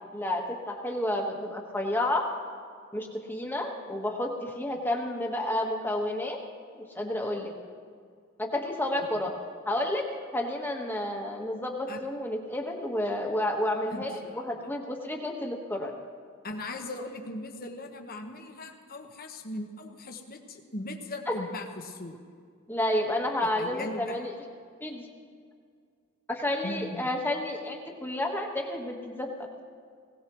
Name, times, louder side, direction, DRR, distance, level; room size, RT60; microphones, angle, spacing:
voice 1, 0.1-2.3 2.9-6.4 6.7-7.5 8.4-9.3 9.7-15.9 21.3-21.4 22.7-24.3 24.8-25.0 26.3-29.5, left 1 dB, 10° left, 1 dB, 1.5 m, -30 dB
voice 2, 13.9-14.7 16.4-22.2 23.6-24.3 26.6-27.1, left 1 dB, 45° left, 3 dB, 1.3 m, -39 dB
21.0 x 18.0 x 3.1 m, 2.1 s
head